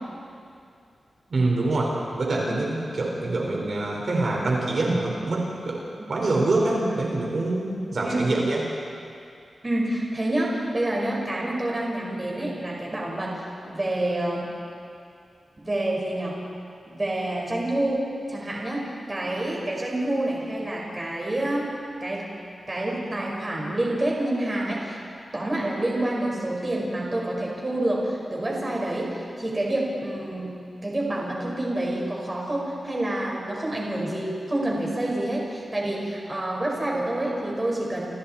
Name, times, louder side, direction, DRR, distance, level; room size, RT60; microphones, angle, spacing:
voice 1, 1.3-5.8 6.1-8.6, right 2 dB, 55° right, -2 dB, 5.3 m, -25 dB
voice 2, 9.6-14.5 15.6-16.4 16.9-22.3 22.7-25.0 25.3-30.6 30.8-38.0, right 1 dB, 25° right, -3 dB, 5.6 m, -28 dB
30.0 x 29.0 x 4.6 m, 2.4 s
wide cardioid pair, 125°, 0 cm